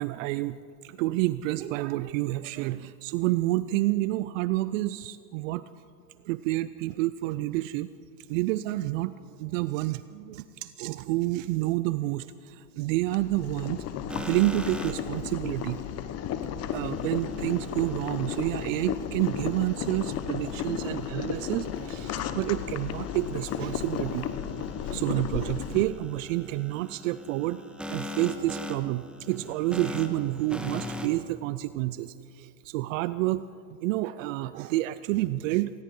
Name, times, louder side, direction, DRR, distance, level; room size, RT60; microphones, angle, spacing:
voice 1, 0.0-5.7 6.3-7.9 8.3-13.8 14.2-15.8 16.7-24.3 24.6-27.6 27.9-33.4 33.8-35.7, right 17 dB, 55° right, 15 dB, 0.5 m, -29 dB
Boiling, 13.1-25.8, left 9 dB, 35° left, 1.0 m, -34 dB
sound 1, 14.1-15.2 16.8-18.4 19.2-31.1, left 2 dB, ahead, 1.4 m, -42 dB
19.0 x 19.0 x 3.8 m, 2.3 s
hypercardioid pair, 110°, 46 cm